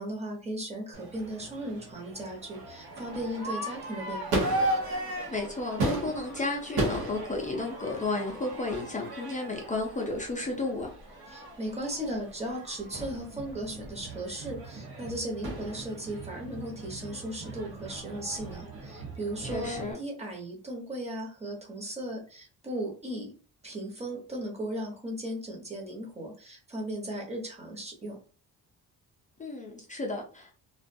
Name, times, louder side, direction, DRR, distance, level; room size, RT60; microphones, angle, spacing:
voice 1, 0.0-4.5 11.3-23.3 23.6-28.2, right 1 dB, 15° right, 0.8 m, -36 dB
Crowd / Fireworks, 0.9-19.9, right 1 dB, 80° right, 0.8 m, -36 dB
voice 2, 5.3-10.9 19.4-20.0 29.4-30.6, left 2 dB, 20° left, 0.4 m, -33 dB
2.4 x 2.2 x 2.6 m
cardioid pair, 120°, 37 cm